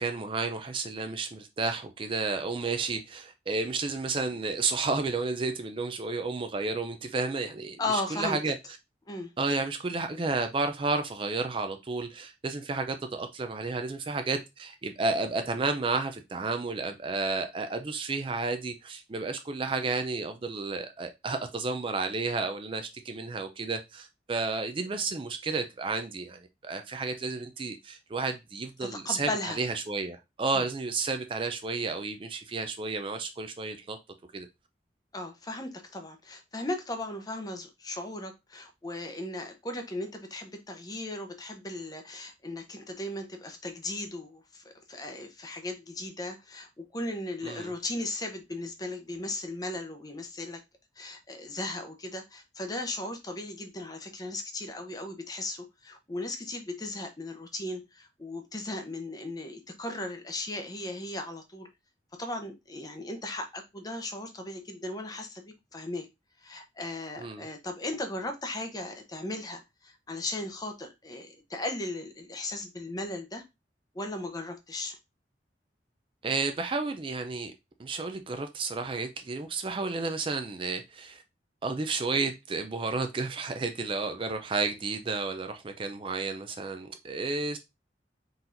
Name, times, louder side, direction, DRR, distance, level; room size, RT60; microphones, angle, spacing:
voice 1, 0.0-8.5 9.4-29.3 29.6-34.0 34.3-34.5 47.4-47.7 67.2-67.5 76.2-77.5 77.8-81.2 81.6-87.6, right 3 dB, 30° right, 0.4 m, -32 dB
voice 2, 7.8-8.4 9.1-9.3 28.8-29.6 30.5-30.7 35.1-50.6 51.0-61.7 62.2-66.1 66.4-73.4 73.9-75.0, left 2 dB, 20° left, 0.7 m, -37 dB
4.2 x 3.9 x 2.5 m
head